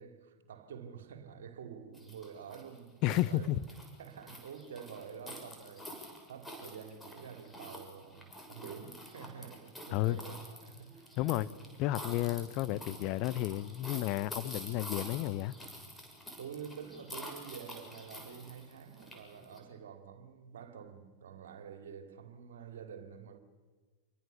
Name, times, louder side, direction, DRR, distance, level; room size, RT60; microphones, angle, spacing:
voice 1, 0.0-3.5 4.0-5.9 6.3-11.6 16.4-23.4, right 7 dB, 60° right, 2.9 m, -48 dB
sound 1, 1.9-19.6, left 1 dB, 10° left, 6.6 m, -48 dB
voice 2, 3.0-3.6 9.9-10.2 11.2-11.5 11.8-15.5, left 15 dB, 40° left, 1.0 m, -32 dB
27.5 x 24.0 x 7.0 m
figure-of-eight pair, 90°, 0 cm